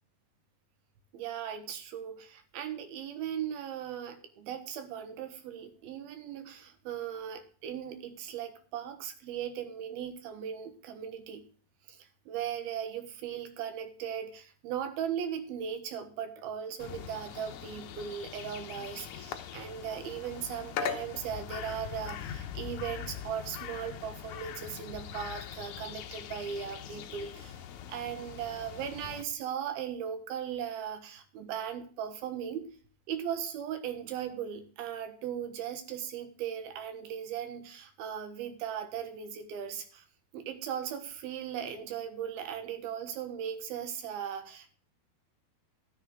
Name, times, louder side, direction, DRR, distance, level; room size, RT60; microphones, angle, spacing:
voice 1, 1.1-11.4 11.9-27.6 27.9-32.7 33.1-40.0 40.3-44.8, right 9 dB, 70° right, 8 dB, 3.1 m, -38 dB
sound 1, 16.8-29.2, left 9 dB, 75° left, 1.7 m, -41 dB
12.5 x 10.0 x 3.8 m, 0.43 s
omnidirectional pair, 4.8 m